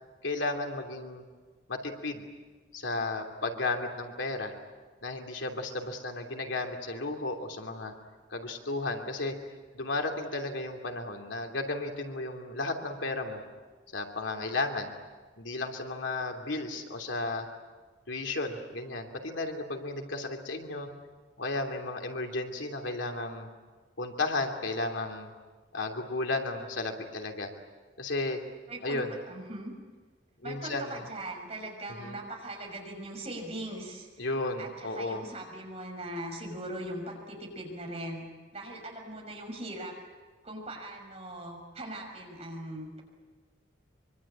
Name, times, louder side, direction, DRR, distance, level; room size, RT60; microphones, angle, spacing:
voice 1, 0.2-1.2 1.7-2.2 2.7-4.5 5.0-7.9 8.3-9.3 9.7-13.4 13.9-14.9 15.4-17.5 18.1-20.9 21.4-23.5 24.0-25.3 25.7-27.5 28.0-28.4 28.8-29.2 30.4-31.0 32.0-32.2 34.2-35.2, left 2 dB, 90° left, 3 dB, 3.0 m, -33 dB
voice 2, 28.7-29.7 30.4-34.1 34.6-38.3 38.5-39.9 40.4-43.0, right 1 dB, 35° right, 1 dB, 5.9 m, -40 dB
24.5 x 24.5 x 8.8 m, 1.3 s
head